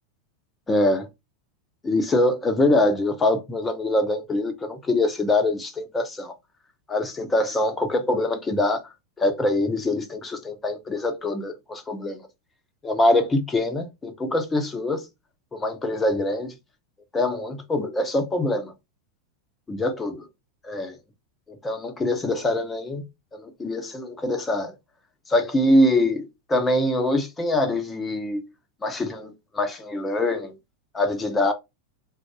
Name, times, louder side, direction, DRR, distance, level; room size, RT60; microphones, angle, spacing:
voice 1, 0.7-1.1 1.8-6.3 6.9-8.8 9.2-12.2 12.8-15.1 15.5-16.5 17.1-18.7 19.7-20.3 20.6-21.0 21.6-23.0 23.3-24.8 25.3-28.4 28.8-30.6 30.9-31.5, left 1 dB, 15° left, 0.9 m, -24 dB
4.2 x 2.6 x 4.6 m
figure-of-eight pair, 90°, 0 cm